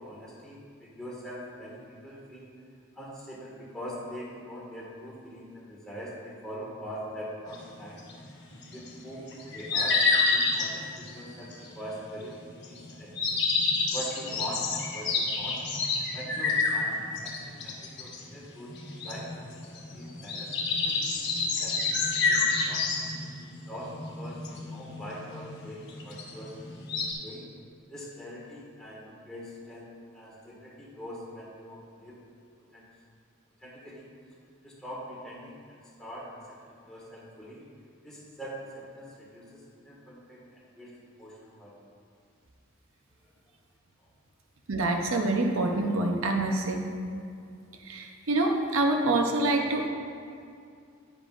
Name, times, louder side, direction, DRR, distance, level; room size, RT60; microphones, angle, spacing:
voice 1, 0.0-2.5 2.9-8.0 8.6-10.0 10.2-15.6 16.0-18.7 19.0-19.3 19.7-20.5 20.8-21.1 21.4-23.1 23.6-26.5 27.0-27.5 27.9-29.9 30.1-32.2 32.7-32.9 33.6-34.1 34.6-37.6 38.0-41.9 44.0-44.1, equal, 5° left, -6 dB, 1.7 m, -43 dB
sound 1, 7.5-27.1, left 4 dB, 55° left, 1.2 m, -29 dB
voice 2, 44.7-46.8 47.8-49.9, right 2 dB, 75° right, 3 dB, 0.8 m, -26 dB
10.0 x 9.7 x 2.5 m, 2.3 s
head